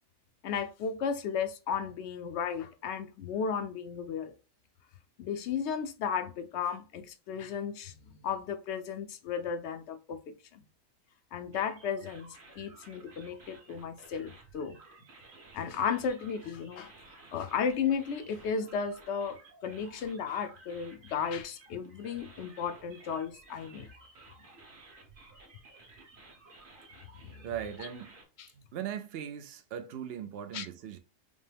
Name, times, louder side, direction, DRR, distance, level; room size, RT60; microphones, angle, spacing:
voice 1, 0.4-4.3 5.2-10.6 11.3-14.8 15.5-16.9 17.3-23.9 27.2-27.4 27.8-27.9 28.4-28.5 30.5-30.7, left 6 dB, 65° left, 0.8 m, -34 dB
sound 1, 11.5-28.2, right 2 dB, 45° right, 1.2 m, -55 dB
voice 2, 27.4-28.1 28.5-31.0, right 9 dB, 65° right, 0.7 m, -39 dB
5.2 x 2.1 x 3.3 m
omnidirectional pair, 1.3 m